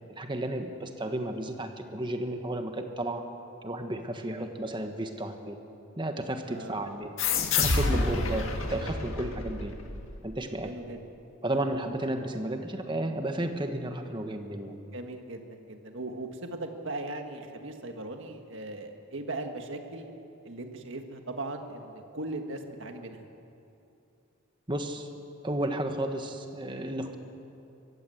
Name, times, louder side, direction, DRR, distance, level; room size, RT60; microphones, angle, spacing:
voice 1, 0.2-3.3 3.6-5.6 6.0-7.1 7.5-9.8 10.2-10.7 11.4-14.8 24.7-25.1 25.4-27.2, right 1 dB, 20° right, 5 dB, 1.4 m, -33 dB
voice 2, 6.5-7.0 8.0-8.1 10.6-11.0 11.5-11.6 14.9-20.1 20.4-23.3, right 2 dB, 60° right, 4 dB, 1.8 m, -39 dB
sound 1, 7.2-10.4, left 3 dB, 65° left, 1.8 m, -29 dB
23.5 x 15.0 x 7.9 m, 2.7 s
head